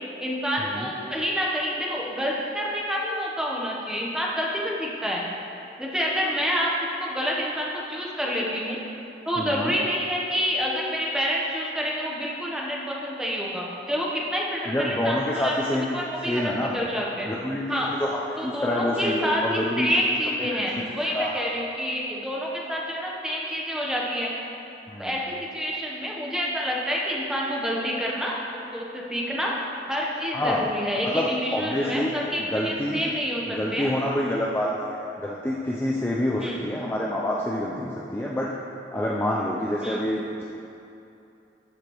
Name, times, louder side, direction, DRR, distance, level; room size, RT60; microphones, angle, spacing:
voice 1, 0.2-5.2 5.8-8.8 9.3-15.6 15.9-17.3 17.7-18.0 18.4-24.3 25.0-28.4 28.7-29.5 29.9-33.9 36.4-36.6 39.8-40.1, equal, 5° right, -3 dB, 0.9 m, -28 dB
voice 2, 9.4-9.8 14.7-16.0 16.3-16.7 17.3-20.1 20.4-20.6 21.1-21.4 24.9-25.2 30.3-30.7 31.0-32.1 32.4-33.1 33.5-38.5 38.9-40.4, left 1 dB, 15° left, -4 dB, 0.4 m, -27 dB
14.0 x 5.0 x 3.0 m, 2.8 s
head